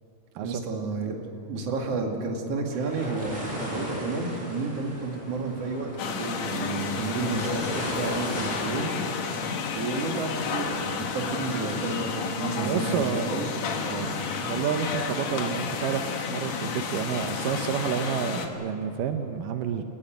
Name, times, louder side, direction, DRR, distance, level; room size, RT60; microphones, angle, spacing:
voice 1, 0.3-1.2 1.5-8.9 9.7-14.1, right 3 dB, 50° right, 2 dB, 3.1 m, -31 dB
sound 1, 2.7-11.1, left 1 dB, 10° right, 5.9 m, -38 dB
sound 2, 6.0-18.5, left 5 dB, 60° left, 2.6 m, -31 dB
voice 2, 12.5-13.3 14.4-19.8, right 8 dB, 85° right, 7 dB, 2.5 m, -29 dB
28.0 x 15.5 x 9.3 m, 2.8 s
omnidirectional pair, 3.8 m